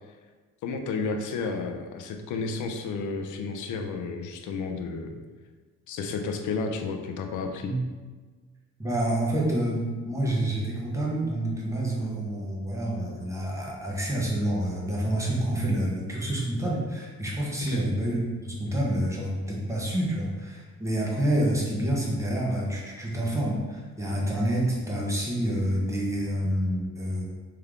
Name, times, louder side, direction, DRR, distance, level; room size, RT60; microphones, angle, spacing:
voice 1, 0.6-5.1 5.9-7.7 17.7-17.8, left 4 dB, 80° left, 4 dB, 0.6 m, -32 dB
voice 2, 8.8-27.2, right 1 dB, 10° right, -4 dB, 1.1 m, -28 dB
3.5 x 3.4 x 3.6 m, 1.4 s
cardioid pair, 90°, 30 cm